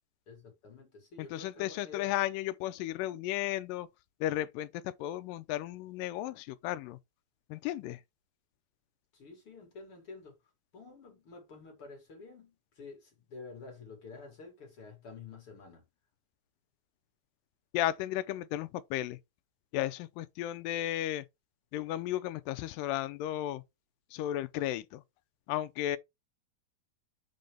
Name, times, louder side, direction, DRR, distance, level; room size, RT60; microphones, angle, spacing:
voice 1, 0.3-2.2 9.1-10.4 10.7-15.9, left 4 dB, 45° left, 2.0 m, -49 dB
voice 2, 1.2-3.9 4.2-7.0 7.5-8.0 17.7-19.2 19.7-21.3 21.7-23.6 24.1-25.0 25.5-26.0, left 13 dB, 80° left, 2.0 m, -34 dB
7.4 x 3.9 x 3.4 m
omnidirectional pair, 4.3 m